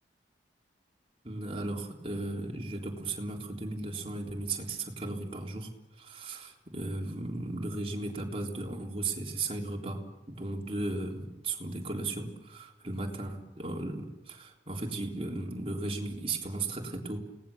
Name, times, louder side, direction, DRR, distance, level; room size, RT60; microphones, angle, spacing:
voice 1, 1.2-5.7 6.0-17.2, right 2 dB, 30° right, 0 dB, 3.6 m, -36 dB
29.5 x 19.0 x 7.2 m, 1.0 s
head